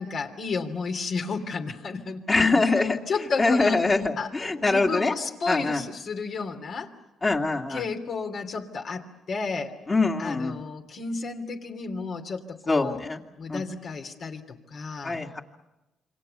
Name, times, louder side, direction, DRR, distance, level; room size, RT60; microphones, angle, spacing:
voice 1, 0.0-2.6 3.1-3.8 4.2-6.9 7.7-9.7 10.2-13.0 13.4-15.2, left 4 dB, 60° left, 3 dB, 3.0 m, -32 dB
voice 2, 2.3-3.0 3.4-5.1 5.5-5.8 7.2-7.8 9.9-10.6 12.7-13.2 13.5-13.6 15.0-15.4, left 3 dB, 30° left, 0 dB, 2.4 m, -23 dB
28.0 x 24.5 x 6.9 m, 0.99 s
cardioid pair, 80°, 0 cm